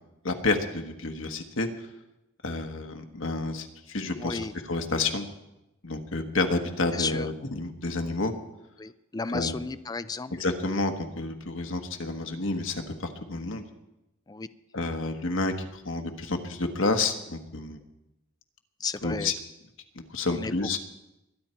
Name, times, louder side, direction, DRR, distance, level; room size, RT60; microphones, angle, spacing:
voice 1, 0.2-1.7 2.4-5.3 5.8-8.3 9.3-9.5 10.3-13.6 14.7-17.8 19.0-19.3 20.1-20.8, left 3 dB, 70° left, 5 dB, 1.5 m, -29 dB
voice 2, 4.2-4.5 6.9-7.3 8.8-10.3 14.3-14.5 18.8-19.3 20.3-20.5, left 4 dB, 20° left, 12 dB, 0.4 m, -33 dB
22.5 x 10.0 x 4.5 m, 0.93 s
head